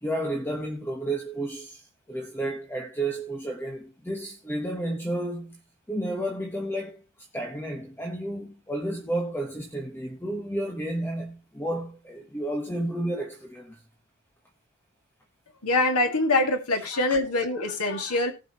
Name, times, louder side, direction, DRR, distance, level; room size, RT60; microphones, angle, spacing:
voice 1, 0.0-5.6 5.9-7.0 7.3-13.8, right 1 dB, 10° left, 1.5 m, -31 dB
voice 2, 15.6-18.3, left 2 dB, 85° left, 2.4 m, -24 dB
19.0 x 6.5 x 3.1 m
head